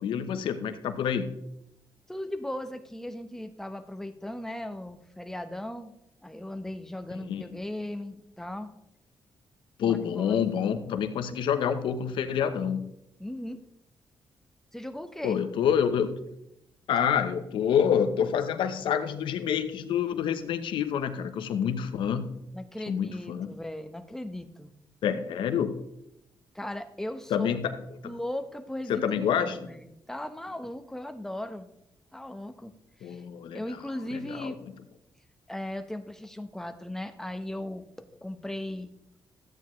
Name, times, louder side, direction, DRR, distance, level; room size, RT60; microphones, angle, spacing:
voice 1, 0.0-1.4 7.2-7.4 9.8-12.9 15.2-16.3 16.9-22.4 22.9-23.5 25.0-25.8 27.3-27.8 28.0-28.1 28.9-29.7 33.0-33.6 34.1-34.5, left 8 dB, 85° left, 10 dB, 0.9 m, -27 dB
voice 2, 2.1-5.9 6.2-8.7 9.8-10.4 13.2-13.6 14.7-15.4 22.5-24.7 26.5-27.5 28.0-31.7 32.1-32.7 33.0-33.2 33.5-34.6 35.5-37.8 38.2-38.9, left 1 dB, 5° left, 8 dB, 1.0 m, -37 dB
13.5 x 9.0 x 3.2 m, 0.82 s
cardioid pair, 75°, 8 cm